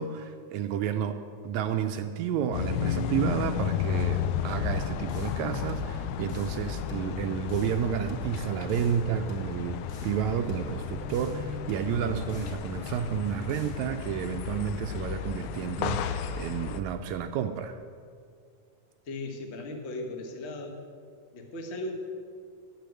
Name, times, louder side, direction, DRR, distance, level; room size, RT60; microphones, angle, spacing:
voice 1, 0.0-17.8, right 8 dB, 80° right, 7 dB, 1.8 m, -31 dB
sound 1, 2.5-16.8, left 8 dB, 85° left, 2.1 m, -33 dB
sound 2, 4.5-5.4 5.7-6.6 6.9-7.8 8.1-9.0 9.3-10.2 10.5-11.4 11.7-12.6 12.9-13.8, right 4 dB, 35° left, 1.4 m, -45 dB
voice 2, 19.1-20.8 21.3-21.9, left 2 dB, 60° left, 3 dB, 0.7 m, -37 dB
10.0 x 7.6 x 9.2 m, 2.2 s
omnidirectional pair, 3.5 m